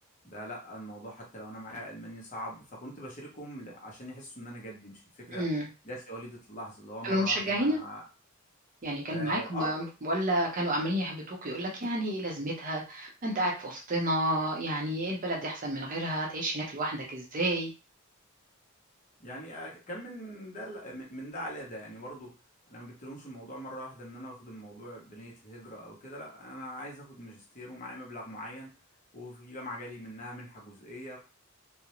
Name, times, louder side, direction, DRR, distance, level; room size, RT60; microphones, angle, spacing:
voice 1, 0.2-5.5 5.8-8.0 9.1-9.9 19.2-22.3 22.7-28.7 29.1-31.2, equal, 35° left, -2 dB, 0.8 m, -42 dB
voice 2, 5.3-5.7 7.0-7.8 8.8-17.7, right 1 dB, 40° right, -1 dB, 0.6 m, -30 dB
2.4 x 2.0 x 2.9 m, 0.31 s
head